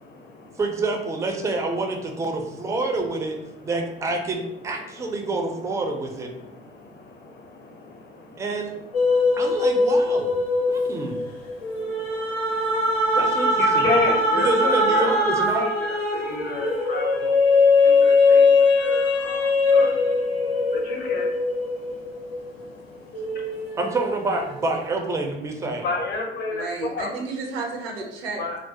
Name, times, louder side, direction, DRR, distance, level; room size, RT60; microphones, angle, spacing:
voice 1, 0.0-0.6 2.5-2.8 3.5-3.7 4.8-5.2 5.8-9.8 10.4-13.2 13.6-17.3 17.8-23.8 25.8-27.2 28.4-28.6, left 3 dB, 35° left, 1 dB, 0.6 m, -33 dB
voice 2, 0.6-3.4 3.6-6.3 8.4-8.7 9.4-10.3 10.7-11.2 13.1-13.9 14.4-15.7 23.8-25.8, right 2 dB, 10° right, 3 dB, 0.3 m, -27 dB
sound 1, 8.9-22.7 23.1-24.8, left 3 dB, 90° left, 0.5 m, -21 dB
voice 3, 26.5-28.4, right 4 dB, 75° right, 1 dB, 0.6 m, -32 dB
2.3 x 2.0 x 2.7 m, 0.85 s
figure-of-eight pair, 55°, 30 cm